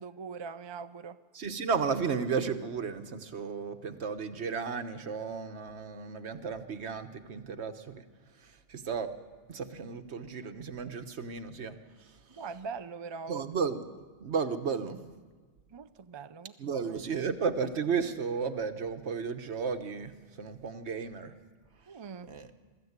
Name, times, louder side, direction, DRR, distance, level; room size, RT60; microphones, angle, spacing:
voice 1, 0.0-1.2 12.4-13.5 15.7-16.8 21.9-22.3, right 5 dB, 35° right, 11 dB, 0.5 m, -42 dB
voice 2, 1.3-8.0 8.4-9.1 9.5-11.7 12.0-12.1 13.3-13.8 14.2-15.1 16.6-21.3 22.3-22.5, right 5 dB, 75° right, 9 dB, 1.4 m, -34 dB
23.0 x 14.0 x 8.1 m, 1.4 s
omnidirectional pair, 1.2 m